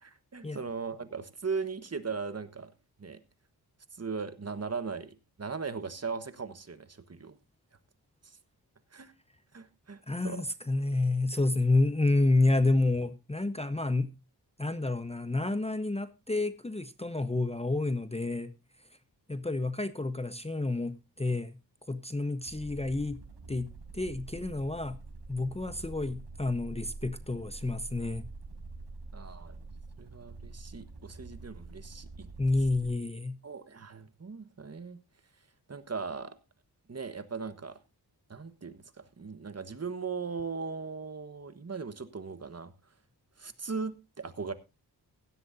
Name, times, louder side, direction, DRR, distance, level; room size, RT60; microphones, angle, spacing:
voice 1, 0.0-2.7 3.0-3.2 4.0-7.3 8.9-9.1 9.5-10.4 29.1-29.6 30.0-32.3 33.4-35.0 35.7-36.4 36.9-37.8 38.3-38.8 39.2-42.7 43.4-44.5, right 5 dB, 40° right, 1.3 m, -38 dB
voice 2, 10.1-14.1 14.6-18.5 19.3-21.6 21.9-23.2 23.5-25.0 25.3-28.2 32.4-33.4, left 2 dB, 15° left, 0.8 m, -29 dB
sound 1, 22.4-33.0, right 3 dB, 90° right, 5.3 m, -46 dB
16.5 x 12.0 x 2.7 m
wide cardioid pair, 80°, 40 cm